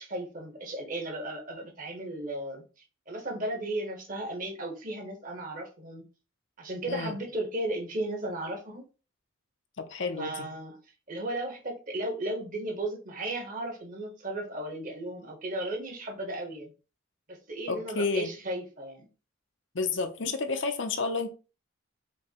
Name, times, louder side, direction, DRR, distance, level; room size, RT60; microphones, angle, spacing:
voice 1, 0.0-2.6 3.1-6.0 6.6-8.9 10.2-10.8 11.1-16.7 17.3-19.1, right 1 dB, 40° right, 1.1 m, -35 dB
voice 2, 6.9-7.2 9.8-10.5 17.7-18.3 19.7-21.3, left 4 dB, 65° left, 0.7 m, -30 dB
5.2 x 2.2 x 4.4 m
head